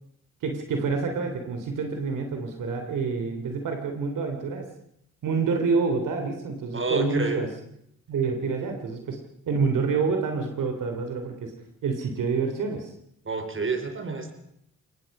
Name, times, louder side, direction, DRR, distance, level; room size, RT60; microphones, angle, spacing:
voice 1, 0.4-4.7 5.2-7.5 8.1-11.5 11.8-12.9, right 4 dB, 80° right, 5 dB, 3.3 m, -27 dB
voice 2, 6.7-7.4 13.3-14.3, right 3 dB, 40° right, 7 dB, 4.2 m, -29 dB
24.0 x 20.0 x 5.4 m, 0.73 s
cardioid pair, 65°, 32 cm